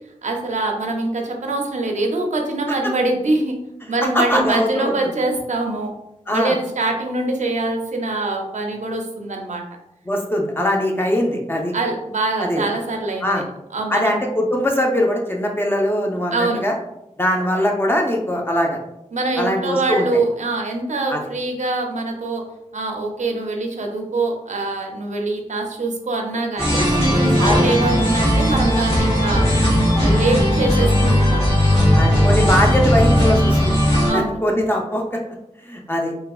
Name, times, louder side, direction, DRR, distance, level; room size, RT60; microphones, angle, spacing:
voice 1, 0.2-3.6 3.9-5.9 6.3-9.6 11.7-13.4 13.7-14.2 16.3-16.6 19.1-22.4 22.7-29.5 30.0-31.7 34.1-34.4, right 2 dB, 70° right, 2 dB, 0.5 m, -24 dB
voice 2, 4.1-4.9 6.3-6.6 10.1-11.7 12.4-12.6 13.2-13.4 13.9-16.7 17.2-18.8 19.4-20.1 21.1-21.2 27.4-27.6 32.0-33.8 34.1-35.0 35.6-36.1, left 1 dB, 15° left, 0 dB, 0.5 m, -21 dB
sound 1, 26.6-34.1, equal, 50° left, 1.3 m, -17 dB
3.5 x 2.1 x 2.3 m, 0.86 s
wide cardioid pair, 80°, 13 cm